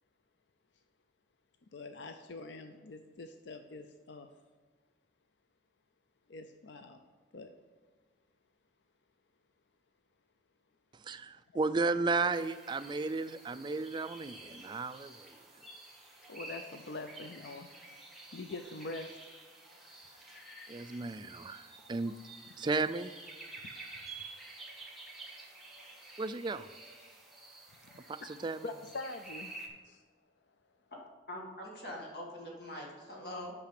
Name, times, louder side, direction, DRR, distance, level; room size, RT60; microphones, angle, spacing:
voice 1, 1.7-4.3 6.3-7.0 7.3-7.5 16.3-18.0 18.3-19.2 20.1-20.7 28.6-29.5 29.8-30.0, left 3 dB, 80° left, 7 dB, 0.5 m, -44 dB
voice 2, 11.0-15.3 20.7-22.1 22.6-23.2 26.2-26.7 28.1-28.7, right 3 dB, 25° right, 11 dB, 0.3 m, -34 dB
sound 1, 12.3-29.7, right 2 dB, ahead, 1.6 m, -51 dB
voice 3, 31.3-33.5, left 1 dB, 60° left, -2 dB, 2.1 m, -43 dB
8.6 x 5.9 x 5.9 m, 1.5 s
head